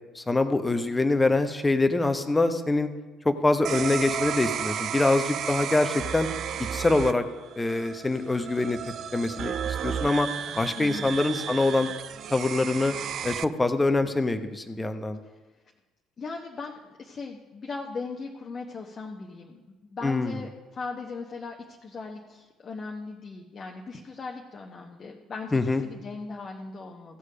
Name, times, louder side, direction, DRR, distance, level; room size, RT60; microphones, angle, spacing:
voice 1, 0.1-2.9 3.2-6.3 6.7-7.2 7.6-8.8 9.1-10.3 10.6-11.9 12.3-12.9 13.2-15.2 20.0-20.4 25.5-25.8, left 2 dB, 15° left, 8 dB, 1.0 m, -24 dB
sound 1, 3.6-13.4, right 8 dB, 50° right, 0.3 m, -33 dB
voice 2, 10.8-11.1 16.2-27.2, left 4 dB, 40° left, 0 dB, 1.1 m, -38 dB
15.5 x 6.5 x 5.1 m, 1.2 s
figure-of-eight pair, 55°, 0 cm